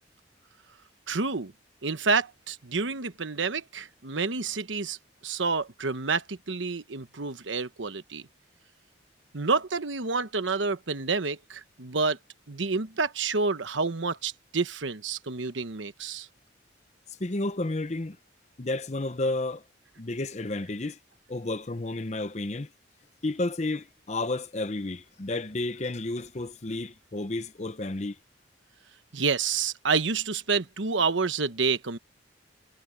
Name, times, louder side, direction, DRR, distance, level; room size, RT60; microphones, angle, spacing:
voice 1, 1.1-1.5 1.8-5.0 5.2-8.3 9.3-12.2 12.5-16.3 29.1-32.0, right 4 dB, 85° right, 1.1 m, -28 dB
voice 2, 17.1-18.2 18.6-19.6 20.0-21.0 21.3-22.7 23.2-28.2, left 2 dB, 35° left, 0.8 m, -31 dB
head